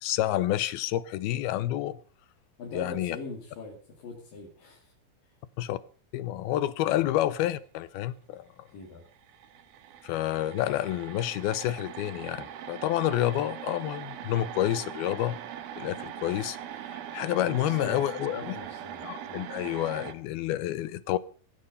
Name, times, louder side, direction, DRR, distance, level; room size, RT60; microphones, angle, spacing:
voice 1, 0.0-2.0 2.7-3.2 5.6-5.8 6.1-8.7 10.0-15.4 15.8-16.6 17.1-18.6 19.0-21.2, left 13 dB, 85° left, 2.9 m, -29 dB
voice 2, 2.6-4.9 5.2-5.3 8.7-9.1 17.5-19.4, left 3 dB, 65° left, 4.5 m, -42 dB
sound 1, 8.8-8.9 9.1-20.1, right 10 dB, 75° right, 3.2 m, -41 dB
16.0 x 15.0 x 5.4 m
omnidirectional pair, 4.3 m